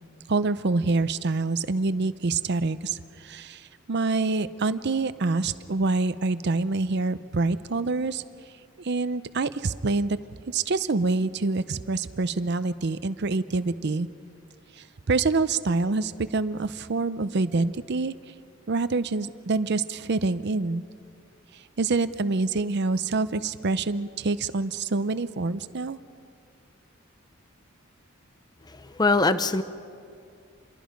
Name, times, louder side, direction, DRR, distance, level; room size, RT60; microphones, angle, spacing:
voice 1, 0.3-8.2 8.8-10.2 10.5-14.1 14.8-18.1 18.7-20.8 21.8-26.0, right 3 dB, 55° right, 13 dB, 0.6 m, -26 dB
voice 2, 28.8-29.6, left 3 dB, 20° left, 12 dB, 0.7 m, -22 dB
27.0 x 21.5 x 5.2 m, 2.3 s
head